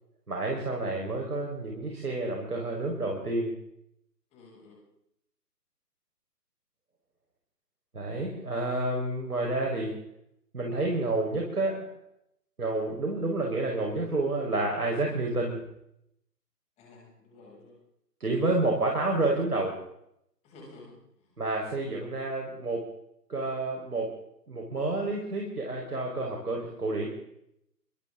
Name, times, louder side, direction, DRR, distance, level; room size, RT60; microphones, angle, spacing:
voice 1, 0.3-3.5 7.9-9.9 10.5-11.9 12.6-15.6 18.2-19.8 21.4-22.8 23.3-24.2 24.5-27.1, right 2 dB, 65° right, 0 dB, 5.1 m, -29 dB
voice 2, 4.3-4.8 15.0-15.2 16.8-17.8 20.4-21.4, left 2 dB, 15° left, -3 dB, 7.3 m, -52 dB
27.5 x 25.5 x 3.9 m, 0.78 s
figure-of-eight pair, 140°, 49 cm